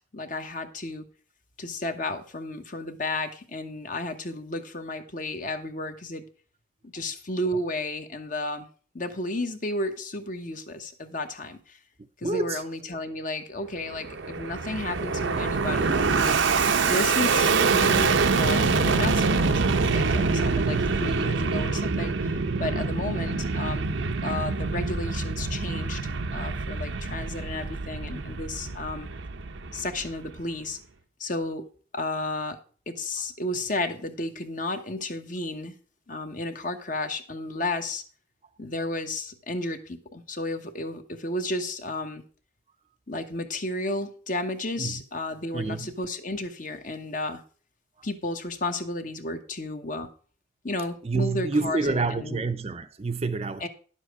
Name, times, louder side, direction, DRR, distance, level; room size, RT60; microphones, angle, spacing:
voice 1, 0.1-1.0 1.6-6.2 6.9-8.7 8.9-11.8 12.2-16.3 16.8-23.9 24.2-26.0 26.3-29.1 29.7-30.8 31.2-31.6 31.9-32.6 32.9-35.7 36.1-38.0 38.6-42.2 43.1-47.4 48.0-50.1 50.6-52.4 53.6-53.7, left 2 dB, 45° left, 1.1 m, -32 dB
voice 2, 12.2-12.6 21.3-21.4 22.7-22.9 44.8-45.0 45.5-45.9 51.0-53.7, right 3 dB, 30° right, 0.6 m, -28 dB
Fixed-wing aircraft airplane, 13.8-30.4, right 4 dB, 80° right, 0.7 m, -25 dB
10.5 x 7.3 x 4.8 m
head